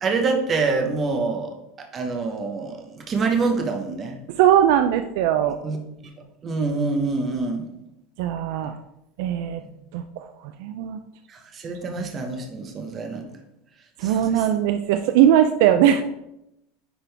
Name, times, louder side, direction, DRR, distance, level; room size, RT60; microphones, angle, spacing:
voice 1, 0.0-4.2 5.6-5.8 6.4-7.6 11.3-13.3 14.0-14.5, right 4 dB, 25° right, 4 dB, 1.0 m, -26 dB
voice 2, 4.4-5.6 8.2-8.7 9.2-9.6 9.9-10.2 10.6-11.0 11.9-12.0 14.0-16.0, right 10 dB, 60° right, 8 dB, 0.4 m, -19 dB
10.0 x 3.8 x 3.4 m, 0.86 s
supercardioid pair, 165°, 0 cm